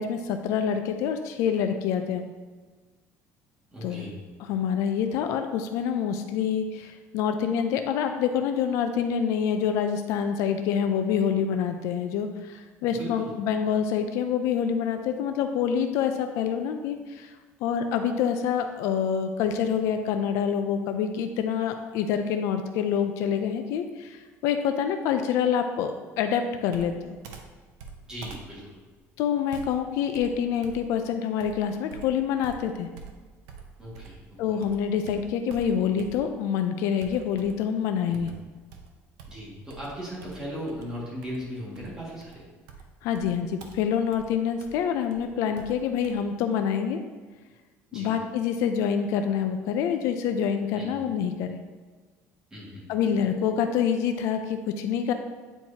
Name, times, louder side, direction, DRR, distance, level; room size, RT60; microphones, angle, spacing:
voice 1, 0.0-2.3 3.8-4.1 4.5-17.3 17.6-27.2 29.2-32.9 34.4-38.3 43.0-47.0 47.9-51.6 52.9-55.1, left 7 dB, 70° left, 7 dB, 0.5 m, -26 dB
voice 2, 3.7-4.2 12.9-13.3 28.1-28.8 33.8-34.4 38.1-38.3 39.3-42.4 47.9-48.2 50.8-51.0 52.5-52.9, equal, 10° right, -7 dB, 2.0 m, -38 dB
Computer keyboard, 26.7-34.3 34.6-36.5 37.0-37.7 38.1-46.1, right 5 dB, 85° right, 0.8 m, -47 dB
9.0 x 4.5 x 2.8 m, 1.3 s
cardioid pair, 175°, 6 cm